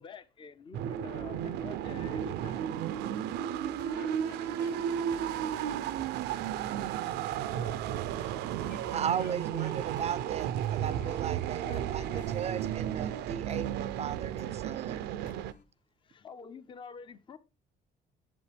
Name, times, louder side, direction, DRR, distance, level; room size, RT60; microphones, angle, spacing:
voice 1, 0.0-2.7 3.1-4.0 7.5-7.8 8.3-9.9 11.6-12.7 13.2-13.3 14.2-14.3 14.9-15.0 16.0-17.4, left 5 dB, 30° left, 0.6 m, -49 dB
Space Ship Maneuvers, 0.7-15.5, right 10 dB, 85° right, 0.5 m, -33 dB
Water Drops - Hip Hop Track, 3.6-15.6, left 5 dB, 50° left, 0.9 m, -56 dB
voice 2, 3.9-6.1 8.7-9.8 14.4-14.5, left 6 dB, 75° left, 1.4 m, -54 dB
voice 3, 8.9-15.1, right 8 dB, 40° right, 0.4 m, -36 dB
8.5 x 7.4 x 3.3 m
cardioid pair, 110°, 17 cm